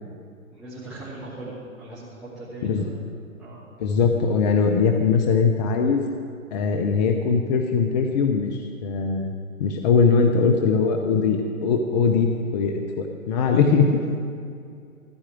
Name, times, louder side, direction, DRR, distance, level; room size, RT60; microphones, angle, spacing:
voice 1, 0.5-3.0 3.4-3.6 13.5-13.6, right 2 dB, ahead, -14 dB, 2.7 m, -38 dB
voice 2, 3.8-6.0 6.5-9.3 9.6-13.8, left 5 dB, 30° left, 4 dB, 0.7 m, -21 dB
14.0 x 4.9 x 9.1 m, 2.4 s
hypercardioid pair, 135°, 42 cm